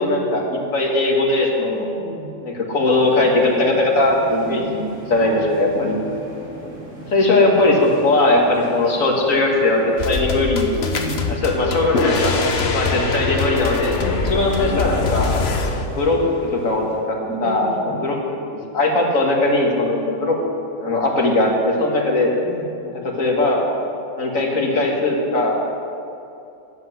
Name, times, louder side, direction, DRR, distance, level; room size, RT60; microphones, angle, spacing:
voice 1, 0.0-1.9 2.4-6.0 7.1-10.7 11.4-12.3 12.7-15.3 16.0-18.2 18.5-20.4 20.8-22.3 22.8-23.7 24.2-25.6, left 2 dB, 85° left, -1 dB, 2.2 m, -19 dB
voice 2, 1.7-2.3 4.4-4.8 5.7-6.0 10.8-11.4 13.9-14.4 17.2-18.0 22.4-22.7, right 1 dB, 5° right, -9 dB, 2.3 m, -32 dB
sound 1, 2.8-17.0, right 1 dB, 70° right, 3.4 m, -38 dB
sound 2, 10.0-15.9, left 4 dB, 55° left, 1.1 m, -23 dB
10.5 x 7.8 x 8.0 m, 2.7 s
omnidirectional pair, 1.4 m